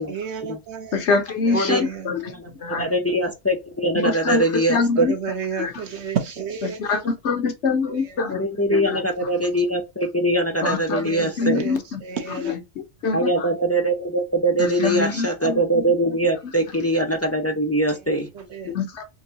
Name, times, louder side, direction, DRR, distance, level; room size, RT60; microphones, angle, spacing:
voice 1, 0.1-1.0 1.5-2.1 3.2-3.3 5.0-7.1 7.9-8.2 11.0-12.6 18.3-18.7, right 7 dB, 80° right, 1.2 m, -32 dB
voice 2, 0.9-2.2 2.5-2.9 4.0-4.4 4.7-5.1 5.6-5.7 6.8-8.4 8.7-9.0 10.6-11.0 11.4-12.0 12.4-13.5 14.6-15.8 18.7-19.0, left 4 dB, 80° left, 1.2 m, -24 dB
voice 3, 1.5-1.8 2.2-5.1 8.3-11.7 13.1-18.3, right 1 dB, 25° left, 0.4 m, -22 dB
3.8 x 2.6 x 2.8 m
omnidirectional pair, 1.1 m